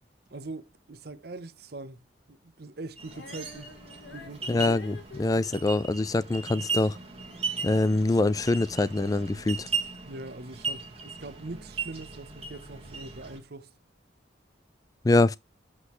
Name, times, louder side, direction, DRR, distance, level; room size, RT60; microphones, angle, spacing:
voice 1, 0.3-3.8 4.1-5.0 10.1-13.7, right 2 dB, 55° right, 0.8 m, -42 dB
sound 1, 3.0-13.4, right 5 dB, 35° right, 1.5 m, -37 dB
Female singing, 3.1-9.4 10.1-10.2, left 3 dB, 70° left, 1.3 m, -50 dB
voice 2, 4.5-7.0 7.6-9.7 15.0-15.4, left 2 dB, 20° left, 0.3 m, -24 dB
7.7 x 6.1 x 3.1 m
head